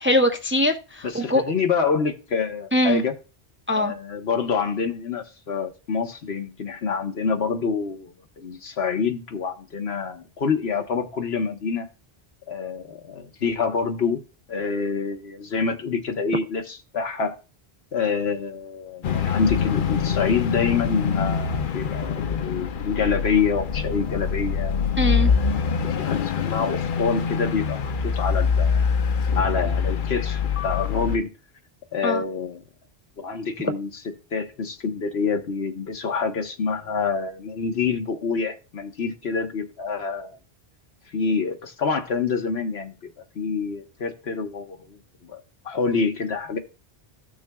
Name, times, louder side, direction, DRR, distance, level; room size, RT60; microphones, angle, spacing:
voice 1, 0.0-1.4 2.7-3.0 3.7-3.9 25.0-25.3 32.0-32.2, equal, 15° right, 0.5 m, -22 dB
voice 2, 1.0-3.1 3.7-11.9 12.5-14.2 14.5-17.4 17.9-24.9 25.8-28.8 29.4-31.3 31.9-32.6 33.2-34.0 34.3-40.4 41.1-42.9 43.3-46.6, left 5 dB, 80° left, 1.3 m, -27 dB
sound 1, 19.0-31.2, left 6 dB, 60° left, 0.8 m, -24 dB
15.0 x 6.2 x 2.3 m
omnidirectional pair, 1.0 m